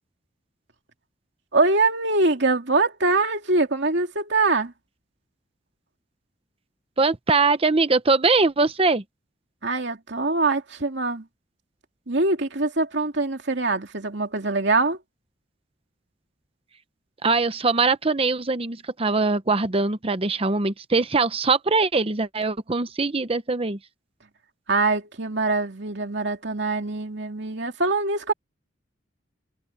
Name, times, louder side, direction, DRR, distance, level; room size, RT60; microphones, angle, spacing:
voice 1, 1.5-4.7 9.6-11.3 12.1-15.0 24.7-28.3, right 3 dB, 65° right, 2.8 m, -23 dB
voice 2, 7.0-9.0 17.2-23.8, right 3 dB, 30° right, 0.8 m, -22 dB
head